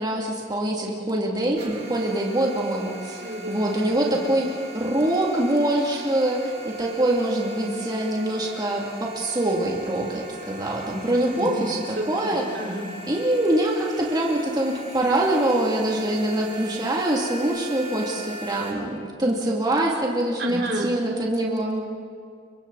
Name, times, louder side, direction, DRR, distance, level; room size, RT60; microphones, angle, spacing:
voice 1, 0.0-4.5 4.7-11.8 12.1-12.4 13.1-21.9, right 1 dB, 25° right, -2 dB, 2.7 m, -24 dB
sound 1, 1.6-18.7, right 1 dB, 40° right, 6.3 m, -40 dB
voice 2, 3.2-4.3 11.3-11.6 12.0-12.9 20.4-20.9, right 1 dB, 70° right, 0 dB, 3.6 m, -32 dB
29.5 x 25.0 x 4.2 m, 2.2 s
head